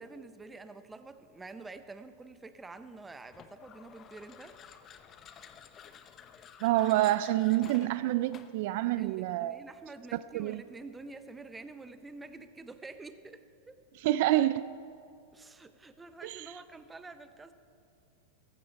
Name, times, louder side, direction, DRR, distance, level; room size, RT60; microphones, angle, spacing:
voice 1, 0.0-4.6 9.0-13.8 15.3-17.5, right 3 dB, 15° right, 0.8 m, -48 dB
sound 1, 3.3-8.7, left 7 dB, 35° left, 0.8 m, -52 dB
voice 2, 6.6-9.6 10.3-10.6 14.0-14.7 16.2-16.5, right 15 dB, 60° right, 0.4 m, -27 dB
15.0 x 15.0 x 4.6 m
hypercardioid pair, 110°, 0 cm